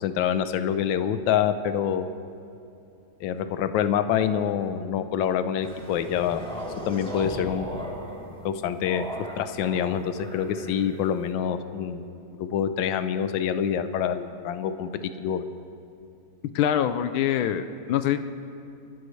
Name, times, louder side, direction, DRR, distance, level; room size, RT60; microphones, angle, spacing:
voice 1, 0.0-2.0 3.2-6.4 6.9-7.7 8.4-9.1 9.4-14.9 15.2-15.4, left 8 dB, 75° left, 10 dB, 1.4 m, -26 dB
sound 1, 5.6-11.3, equal, ahead, 2.9 m, -37 dB
voice 2, 16.5-18.2, left 10 dB, 90° left, 10 dB, 1.5 m, -24 dB
26.0 x 14.0 x 3.2 m, 2.7 s
omnidirectional pair, 2.2 m